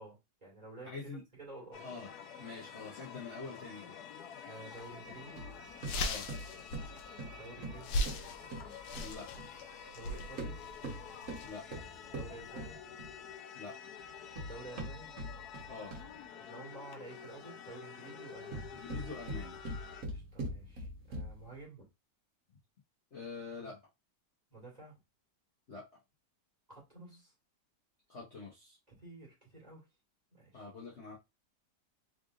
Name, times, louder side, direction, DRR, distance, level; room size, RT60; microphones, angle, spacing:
voice 1, 0.0-1.8 4.4-5.4 7.3-8.2 9.9-10.6 12.1-12.8 14.4-15.1 16.4-18.7 20.1-21.9 24.5-25.0 26.7-27.3 29.0-29.9 30.3-30.7, right 2 dB, 25° right, -4 dB, 2.0 m, -51 dB
voice 2, 0.8-1.2 1.8-2.1 2.4-3.9 6.0-6.3 9.0-9.3 11.4-11.6 13.5-13.8 15.7-15.9 18.7-19.6 23.1-23.8 25.7-25.9 28.1-28.8 30.5-31.1, left 4 dB, 45° left, -4 dB, 1.2 m, -45 dB
sound 1, 1.7-20.0, left 7 dB, 70° left, 1.1 m, -49 dB
sound 2, 4.7-4.9 5.3-5.4 5.6-12.7, left 1 dB, 90° left, 1.3 m, -40 dB
sound 3, 5.4-9.5 10.2-13.3 14.0-16.3 18.3-21.5, right 1 dB, 50° right, 1.4 m, -43 dB
3.8 x 3.4 x 2.5 m, 0.22 s
omnidirectional pair, 1.9 m